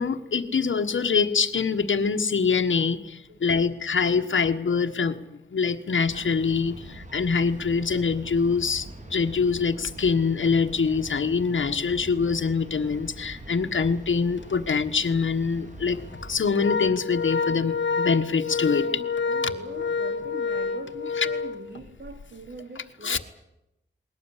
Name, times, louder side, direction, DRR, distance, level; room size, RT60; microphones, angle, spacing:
voice 1, 0.0-5.1 5.5-18.8 21.2-21.3 23.0-23.2, left 5 dB, 90° left, 5 dB, 1.4 m, -24 dB
voice 2, 3.3-3.7 18.8-23.2, right 3 dB, 65° right, 5 dB, 2.8 m, -42 dB
sound 1, 6.1-16.4, right 1 dB, 40° right, 4.0 m, -43 dB
Organ, 14.4-14.6 15.0-15.1 15.9-22.2, left 5 dB, 75° left, 1.2 m, -28 dB
21.5 x 18.5 x 9.9 m, 0.86 s
wide cardioid pair, 80°, 19 cm